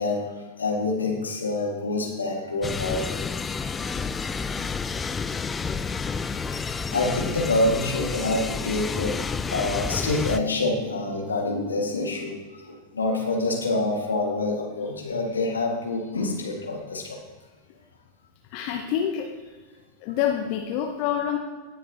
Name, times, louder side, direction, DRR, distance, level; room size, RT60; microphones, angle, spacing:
voice 1, 0.0-3.3 4.1-4.3 6.6-9.2 9.5-17.2, left 2 dB, 75° left, 0 dB, 1.8 m, -27 dB
sound 1, 2.6-10.4, left 5 dB, 15° left, 0.4 m, -30 dB
voice 2, 18.5-19.6 20.0-21.4, left 9 dB, 45° left, 3 dB, 0.8 m, -27 dB
17.5 x 7.0 x 2.9 m, 1.4 s
figure-of-eight pair, 90°, 0 cm